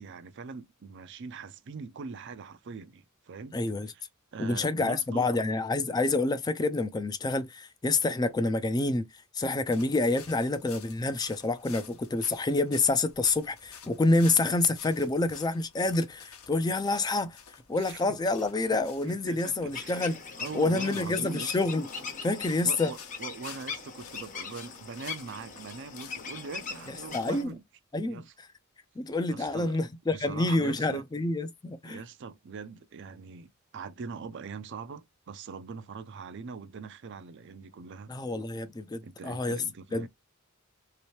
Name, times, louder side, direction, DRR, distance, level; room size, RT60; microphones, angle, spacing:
voice 1, 0.0-3.6 4.3-5.3 17.7-18.0 19.0-21.6 22.6-27.6 28.1-28.3 29.3-31.1 31.8-38.1 39.0-40.1, right 5 dB, 55° right, 0.4 m, -42 dB
voice 2, 3.5-3.9 4.4-9.1 9.3-17.4 17.7-20.2 20.5-21.9 22.2-22.9 26.9-27.5 27.9-28.5 29.0-32.0 38.1-39.6 39.9-40.1, left 2 dB, 20° left, 0.3 m, -28 dB
sound 1, 9.7-27.5, left 7 dB, 80° left, 0.9 m, -52 dB
sound 2, 19.7-27.4, left 5 dB, 35° left, 0.8 m, -41 dB
3.1 x 2.9 x 3.1 m
head